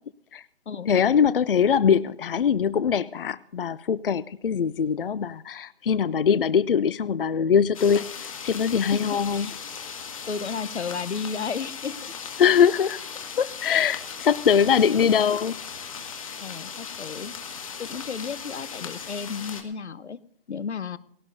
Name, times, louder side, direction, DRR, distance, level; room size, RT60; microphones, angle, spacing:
voice 1, 0.9-9.5 12.4-13.0 13.4-15.6, left 7 dB, 55° left, 17 dB, 0.5 m, -22 dB
sound 1, 7.7-19.6, left 6 dB, 30° left, 1.8 m, -38 dB
voice 2, 8.9-9.6 10.3-12.1 16.4-17.3 17.8-20.2 20.5-21.0, left 6 dB, 90° left, 15 dB, 1.0 m, -33 dB
19.5 x 17.5 x 2.7 m, 0.69 s
hypercardioid pair, 175°, 33 cm